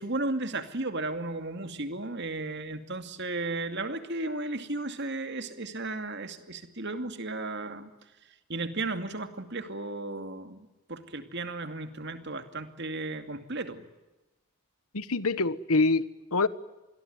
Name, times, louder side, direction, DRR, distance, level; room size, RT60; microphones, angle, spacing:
voice 1, 0.0-7.9 8.5-10.6 10.9-13.8, right 2 dB, 50° right, 2.5 m, -34 dB
voice 2, 14.9-16.5, left 3 dB, 80° left, 1.3 m, -25 dB
27.0 x 21.5 x 9.5 m
head